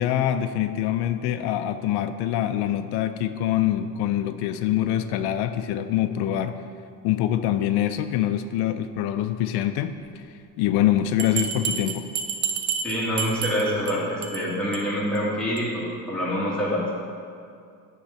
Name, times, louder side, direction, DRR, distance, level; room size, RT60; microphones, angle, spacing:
voice 1, 0.0-6.5 7.0-10.2 10.6-12.1, left 11 dB, 90° left, 9 dB, 0.5 m, -24 dB
Bell, 11.2-13.9 14.2-14.4 14.7-14.8 15.1-15.2 15.6-15.7, right 7 dB, 50° right, 0.7 m, -29 dB
voice 2, 12.8-16.8, equal, ahead, -8 dB, 1.8 m, -26 dB
10.0 x 3.9 x 5.5 m, 2.4 s
cardioid pair, 160°, 38 cm